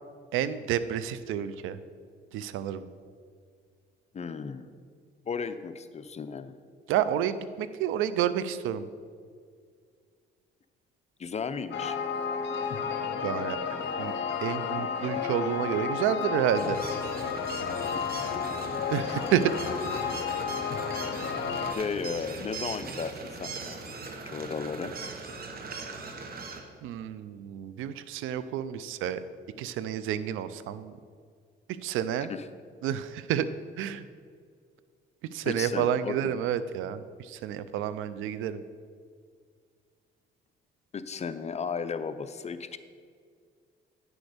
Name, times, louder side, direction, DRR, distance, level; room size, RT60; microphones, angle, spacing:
voice 1, 0.3-1.8 2.3-2.9 6.9-8.9 13.2-13.6 14.0-14.1 14.4-16.8 18.9-19.5 26.8-29.2 29.6-30.9 31.8-32.3 32.8-33.5 33.8-34.0 35.3-38.6, right 10 dB, 90° right, 14 dB, 0.5 m, -29 dB
voice 2, 4.1-4.7 5.3-6.5 11.2-12.0 21.8-24.9 32.3-32.4 35.4-36.4 40.9-42.8, left 5 dB, 35° left, 11 dB, 0.5 m, -35 dB
sound 1, 11.7-21.7, left 6 dB, 65° left, 0.9 m, -32 dB
sound 2, 16.5-26.6, right 4 dB, 50° right, 1.1 m, -40 dB
9.5 x 6.2 x 5.0 m, 2.1 s
cardioid pair, 90°, 20 cm